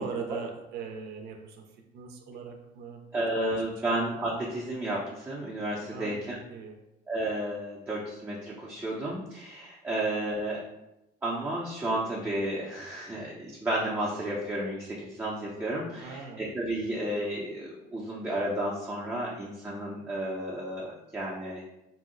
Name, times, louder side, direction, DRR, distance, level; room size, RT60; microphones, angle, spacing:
voice 1, 0.0-3.2 3.5-3.6 5.9-6.2 6.5-6.8 9.9-10.0 16.0-16.4, right 5 dB, 75° right, 3 dB, 0.5 m, -40 dB
voice 2, 3.1-6.4 7.1-10.6 11.2-21.6, right 1 dB, 10° right, -5 dB, 0.5 m, -32 dB
2.7 x 2.0 x 3.7 m, 0.91 s
cardioid pair, 110°, 17 cm